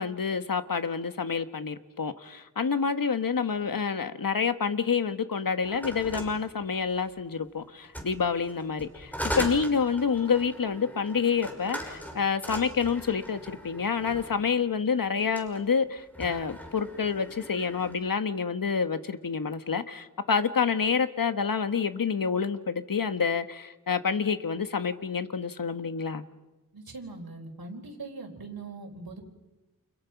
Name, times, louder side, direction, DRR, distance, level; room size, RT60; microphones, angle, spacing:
voice 1, 0.0-26.2, left 6 dB, 65° left, 1.4 m, -28 dB
sound 1, 5.6-7.2 7.8-14.5 15.2-15.6 16.0-18.0, equal, 5° left, 6.3 m, -39 dB
voice 2, 26.7-29.3, right 3 dB, 70° right, 4.6 m, -41 dB
30.0 x 29.0 x 6.0 m
wide cardioid pair, 80°, 37 cm